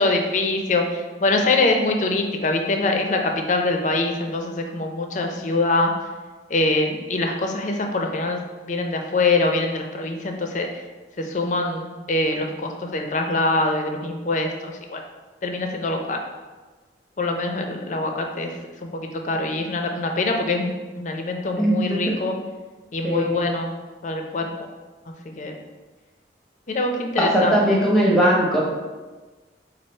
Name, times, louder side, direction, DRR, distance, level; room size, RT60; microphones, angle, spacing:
voice 1, 0.0-5.9 6.5-8.4 8.7-10.8 11.2-15.0 15.4-16.2 17.2-18.5 18.8-22.3 22.9-23.7 24.0-24.5 25.2-25.5 26.7-27.8, left 2 dB, 40° left, 3 dB, 0.5 m, -24 dB
voice 2, 23.0-23.4 27.2-28.6, right 1 dB, 5° left, -4 dB, 0.9 m, -19 dB
4.7 x 2.4 x 4.2 m, 1.3 s
head